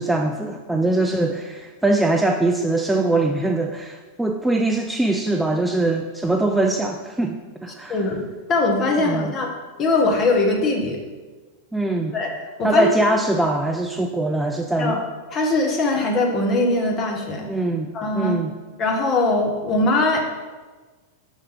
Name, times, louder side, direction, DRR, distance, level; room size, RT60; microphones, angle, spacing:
voice 1, 0.0-8.1 9.0-9.3 11.7-12.2 12.6-15.0 17.5-17.9 18.1-18.5, right 2 dB, 5° right, 3 dB, 0.3 m, -22 dB
voice 2, 7.9-9.5 9.8-11.0 12.1-12.3 12.6-12.9 14.8-15.0 15.3-17.5 17.9-18.4 18.8-20.2, left 2 dB, 30° left, 1 dB, 1.1 m, -21 dB
5.2 x 4.1 x 5.1 m, 1.3 s
figure-of-eight pair, 90°, 0 cm